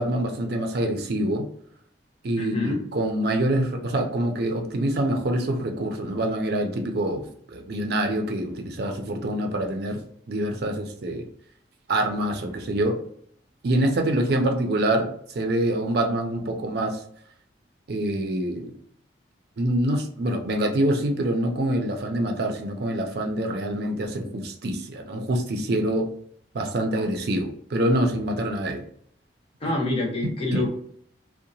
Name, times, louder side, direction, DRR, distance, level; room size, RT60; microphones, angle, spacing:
voice 1, 0.0-1.5 2.2-10.0 10.3-11.3 11.9-13.0 13.6-15.1 15.3-17.0 17.9-18.7 19.6-26.1 26.5-28.8 29.6-29.7 30.2-30.7, right 1 dB, 60° right, 4 dB, 0.4 m, -25 dB
voice 2, 2.4-2.8 29.6-30.7, left 2 dB, 30° left, 0 dB, 0.6 m, -26 dB
2.8 x 2.1 x 2.6 m, 0.63 s
head